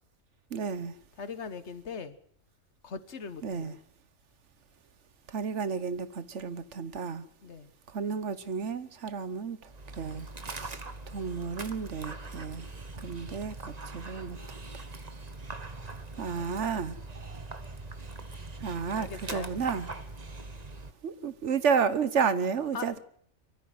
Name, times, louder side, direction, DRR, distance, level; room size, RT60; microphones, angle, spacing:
voice 1, 0.5-0.9 3.4-3.7 5.3-7.2 7.9-9.6 10.0-10.8 11.1-12.7 13.0-14.4 16.2-17.0 18.6-19.9 21.0-23.0, right 6 dB, 65° right, 1.4 m, -31 dB
voice 2, 1.2-2.2 2.8-3.8 7.4-7.7 10.4-10.6 18.9-19.5 22.7-23.0, left 5 dB, 60° left, 1.6 m, -40 dB
Dog, 9.6-20.9, right 3 dB, 30° right, 1.4 m, -42 dB
23.0 x 14.5 x 7.8 m
omnidirectional pair, 1.4 m